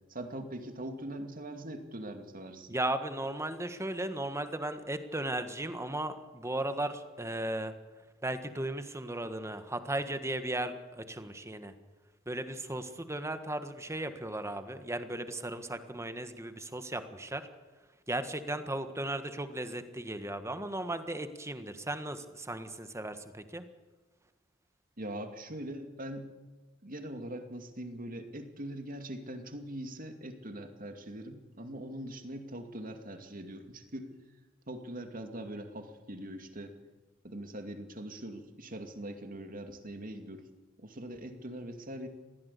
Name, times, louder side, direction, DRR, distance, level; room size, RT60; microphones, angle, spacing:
voice 1, 0.1-2.7 25.0-26.3 26.8-34.1 34.7-36.8 37.2-40.4 40.8-42.1, right 1 dB, 45° right, 6 dB, 2.3 m, -42 dB
voice 2, 2.7-7.7 8.2-11.7 12.3-17.4 18.1-23.6, right 1 dB, 15° right, 9 dB, 1.5 m, -36 dB
21.0 x 15.5 x 8.4 m, 1.3 s
head